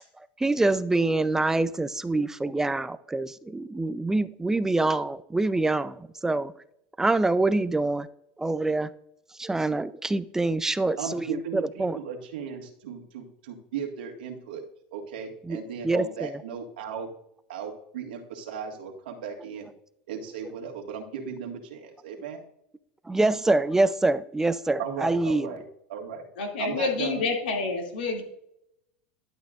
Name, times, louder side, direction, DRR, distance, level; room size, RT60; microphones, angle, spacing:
voice 1, 0.4-6.5 7.0-8.1 8.4-8.9 9.4-12.0 15.5-15.6 15.8-16.3 23.1-25.5, right 2 dB, 10° right, 0.4 m, -25 dB
voice 2, 11.0-14.6 14.9-17.1 17.5-19.7 20.1-22.4 24.8-25.6 25.9-26.3 26.6-27.2, right 7 dB, 85° right, 1.8 m, -36 dB
voice 3, 26.4-28.2, left 4 dB, 85° left, 2.4 m, -28 dB
11.5 x 8.1 x 2.5 m
supercardioid pair, 105°, 5 cm